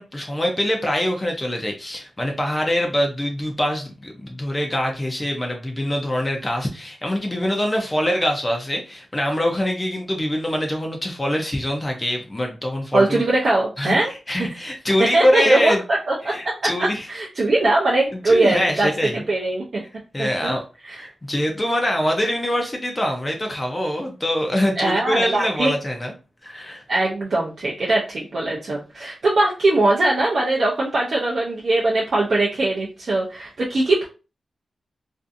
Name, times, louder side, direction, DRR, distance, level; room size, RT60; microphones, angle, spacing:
voice 1, 0.0-13.2 13.8-15.8 16.2-17.1 18.3-19.2 20.1-20.6 21.0-26.1 26.4-26.8, left 1 dB, 15° left, 2 dB, 0.4 m, -24 dB
voice 2, 12.9-14.1 15.1-15.7 16.1-19.8 20.2-20.6 20.8-21.1 24.8-25.7 26.9-34.1, right 2 dB, 55° right, -3 dB, 0.5 m, -21 dB
2.5 x 2.4 x 2.4 m, 0.33 s
wide cardioid pair, 155°, 0 cm